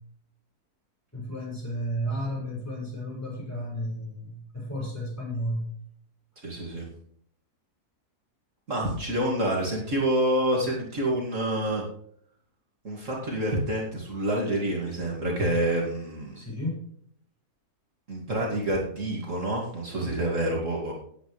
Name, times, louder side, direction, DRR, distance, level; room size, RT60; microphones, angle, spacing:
voice 1, 1.1-5.6 16.3-16.8, equal, 10° left, -4 dB, 6.3 m, -32 dB
voice 2, 6.4-6.9 8.7-11.8 12.8-16.4 18.1-20.9, right 1 dB, 55° right, -2 dB, 2.6 m, -27 dB
17.5 x 8.8 x 3.3 m, 0.65 s
omnidirectional pair, 1.6 m